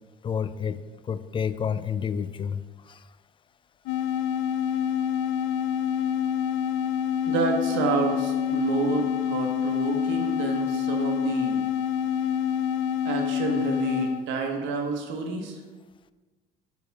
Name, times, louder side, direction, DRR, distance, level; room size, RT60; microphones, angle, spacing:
voice 1, 0.2-0.8 1.1-3.0, left 7 dB, 25° left, 14 dB, 0.3 m, -30 dB
sound 1, 3.9-14.2, left 9 dB, 90° left, 0.5 m, -27 dB
voice 2, 7.3-11.7 13.0-15.6, right 5 dB, 75° right, 3 dB, 1.3 m, -29 dB
6.8 x 4.7 x 5.4 m, 1.3 s
cardioid pair, 115°, 19 cm